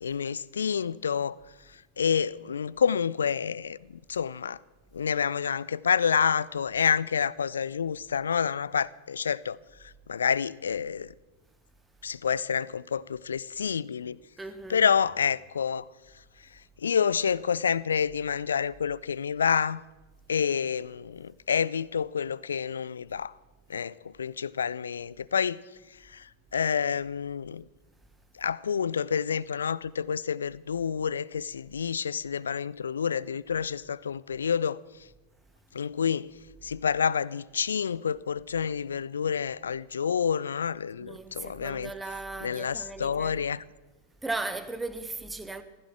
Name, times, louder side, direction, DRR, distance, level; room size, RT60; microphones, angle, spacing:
voice 1, 0.0-1.3 2.0-3.8 4.1-4.6 4.9-9.6 10.1-11.1 12.0-14.2 14.7-15.8 16.8-19.8 20.3-23.3 23.7-25.6 26.1-26.2 26.5-27.6 28.4-34.8 35.7-36.3 36.6-41.9 42.4-43.6, left 7 dB, 70° left, 0.4 m, -28 dB
voice 2, 14.4-14.8 41.0-43.4 44.2-45.6, right 3 dB, 10° right, 1.2 m, -37 dB
15.0 x 15.0 x 6.1 m
figure-of-eight pair, 90°, 0 cm